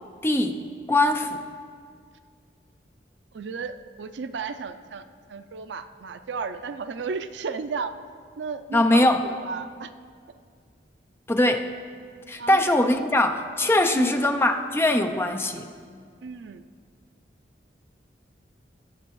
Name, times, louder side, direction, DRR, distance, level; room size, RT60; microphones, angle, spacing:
voice 1, 0.2-0.6 0.9-1.4 8.7-9.2 11.3-11.7 12.3-15.7, left 1 dB, 15° left, 6 dB, 0.4 m, -21 dB
voice 2, 3.3-5.0 5.3-7.9 8.4-9.9 12.4-12.6 13.9-14.2 16.2-16.6, right 5 dB, 80° right, 10 dB, 0.4 m, -34 dB
19.0 x 7.6 x 3.1 m, 2.1 s
head